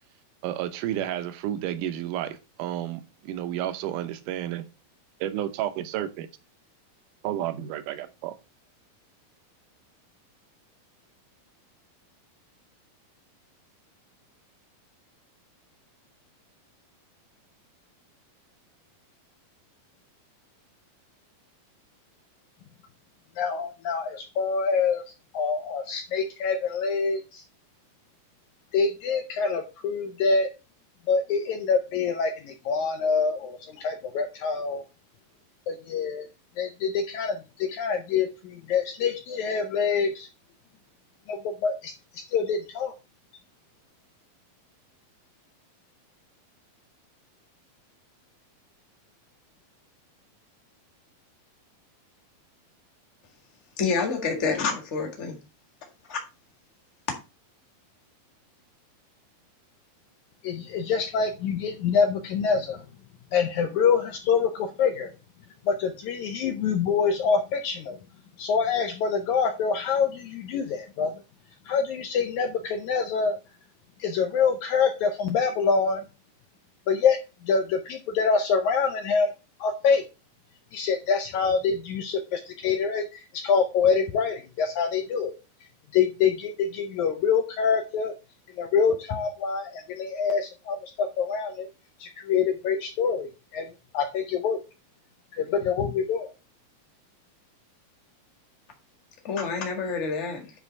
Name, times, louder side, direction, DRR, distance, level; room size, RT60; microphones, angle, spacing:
voice 1, 0.4-4.7 5.2-6.3 7.2-8.3, right 12 dB, 75° right, 2.1 m, -31 dB
voice 2, 23.4-25.0 25.3-27.4 28.7-30.5 31.1-34.8 35.7-36.3 36.6-40.3 41.3-42.9 60.4-62.8 63.3-65.1 65.7-68.0 68.4-71.1 71.7-73.4 74.0-76.0 76.9-77.2 77.4-79.3 79.6-80.0 80.7-85.3 85.9-88.1 88.5-91.7 92.0-93.7 93.9-94.6 95.3-96.3, left 5 dB, 75° left, 1.7 m, -25 dB
voice 3, 53.8-55.4 56.1-56.2 99.2-100.5, left 4 dB, 35° left, 1.1 m, -28 dB
9.9 x 3.5 x 5.2 m
omnidirectional pair, 4.2 m